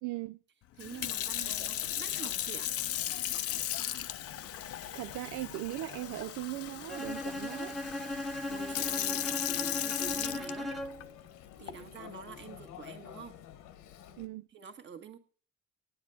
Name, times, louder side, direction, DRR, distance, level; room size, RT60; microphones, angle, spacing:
voice 1, 0.0-0.4 4.9-7.8 14.2-14.5, right 17 dB, 75° right, 0.5 m, -39 dB
Sink (filling or washing) / Fill (with liquid), 0.8-11.0 11.7-12.0, left 12 dB, 55° left, 0.6 m, -36 dB
voice 2, 0.8-2.7 8.5-10.7 11.6-13.4 14.5-15.2, right 6 dB, 40° right, 1.5 m, -47 dB
Chatter, 1.0-14.3, left 10 dB, 85° left, 1.4 m, -51 dB
Bowed string instrument, 6.9-11.1, left 1 dB, ahead, 0.6 m, -37 dB
9.7 x 9.5 x 7.8 m
cardioid pair, 160°, 29 cm